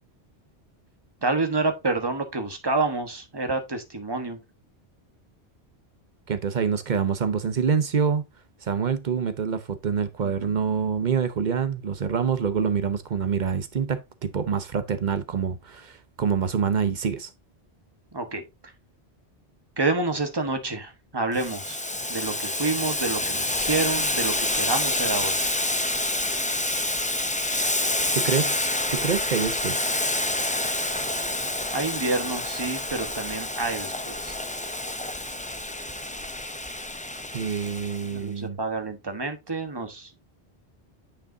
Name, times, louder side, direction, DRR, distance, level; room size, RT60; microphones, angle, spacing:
voice 1, 1.2-4.4 10.2-10.6 18.1-18.4 19.8-21.8 22.1-25.4 31.7-34.3 38.1-40.1, right 3 dB, 20° right, 1.2 m, -28 dB
voice 2, 6.3-8.2 8.6-17.3 28.1-28.5 28.9-30.0 37.3-38.6, right 6 dB, 45° right, 0.8 m, -26 dB
Boiling, 21.3-38.1, left 1 dB, 15° left, 0.3 m, -28 dB
9.1 x 5.0 x 2.7 m
omnidirectional pair, 1.2 m